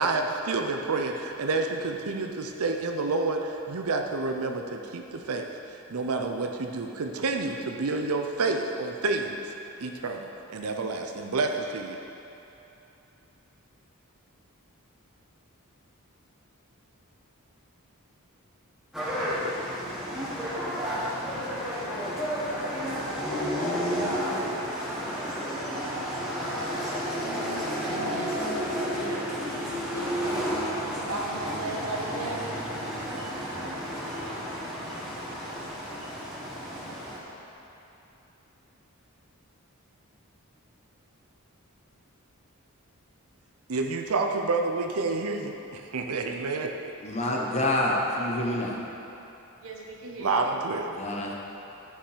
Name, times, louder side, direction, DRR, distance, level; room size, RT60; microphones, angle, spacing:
voice 1, 0.0-9.4 9.8-12.0 43.7-46.9 50.2-50.9, right 3 dB, 85° right, 3 dB, 0.6 m, -29 dB
sound 1, 18.9-37.2, equal, ahead, 1.6 m, -31 dB
voice 2, 27.8-29.3 29.9-30.6 31.1-32.5 49.6-50.5, right 2 dB, 65° right, -2 dB, 1.4 m, -36 dB
voice 3, 47.0-48.8 50.9-51.3, left 1 dB, 30° left, -1 dB, 1.0 m, -27 dB
11.5 x 5.7 x 5.0 m, 3.0 s
head